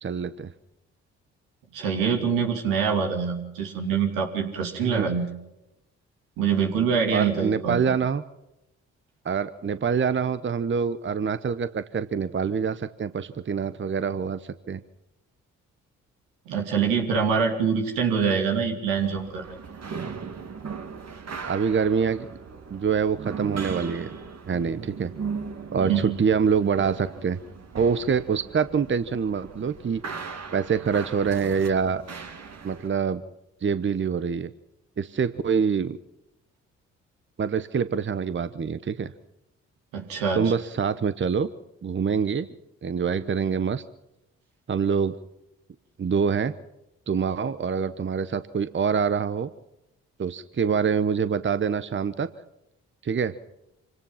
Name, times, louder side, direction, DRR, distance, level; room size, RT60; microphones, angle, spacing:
voice 1, 0.0-0.5 4.8-5.1 7.1-8.2 9.2-14.8 21.4-22.3 22.7-24.2 24.5-25.1 25.7-27.4 27.7-30.0 30.5-32.0 32.6-33.2 33.6-34.5 35.0-36.0 37.4-39.1 40.3-41.5 41.8-42.5 42.8-43.8 44.7-45.2 46.0-46.5 47.1-49.5 50.2-52.3 53.0-53.4, right 6 dB, 35° right, 13 dB, 1.0 m, -25 dB
voice 2, 1.7-5.3 6.4-7.8 16.5-19.6 25.8-26.2 39.9-40.5, right 6 dB, 80° right, 3 dB, 2.9 m, -25 dB
sound 1, 18.9-32.9, right 5 dB, 50° right, 2.3 m, -38 dB
25.5 x 18.0 x 5.7 m, 0.88 s
hypercardioid pair, 45°, 33 cm